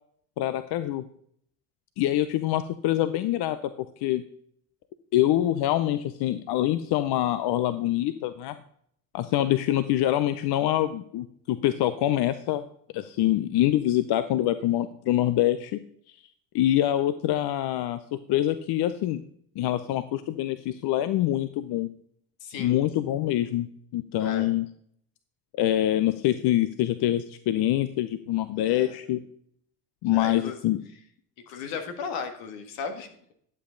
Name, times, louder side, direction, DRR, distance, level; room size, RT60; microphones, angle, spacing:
voice 1, 0.4-1.0 2.0-4.2 5.1-8.6 9.1-12.6 12.9-15.8 16.5-18.0 18.3-19.2 19.6-21.9 22.6-23.7 23.9-24.7 25.6-29.2 30.0-30.8, left 13 dB, 60° left, 12 dB, 0.7 m, -25 dB
voice 2, 22.4-22.8 24.2-24.5 28.6-28.9 30.1-30.6 31.5-33.3, left 5 dB, 80° left, 6 dB, 1.6 m, -36 dB
11.0 x 7.5 x 3.9 m, 0.65 s
hypercardioid pair, 60°, 44 cm